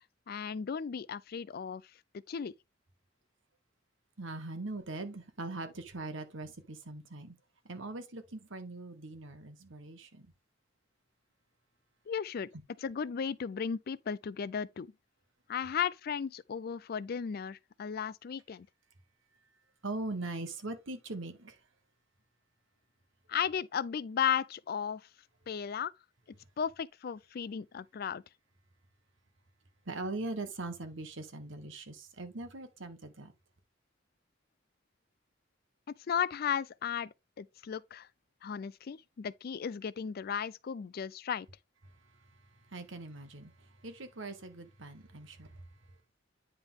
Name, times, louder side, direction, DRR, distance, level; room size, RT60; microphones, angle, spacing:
voice 1, 0.3-1.8 2.3-2.5 12.1-12.5 12.8-14.9 15.5-18.7 23.3-25.0 25.5-25.9 26.6-28.2 36.1-38.1 38.4-41.5, left 7 dB, 50° left, 0.4 m, -35 dB
voice 2, 4.2-7.3 7.6-10.3 19.8-21.6 29.8-33.3 42.0-45.7, right 2 dB, 75° right, 1.4 m, -41 dB
9.6 x 3.7 x 3.6 m
head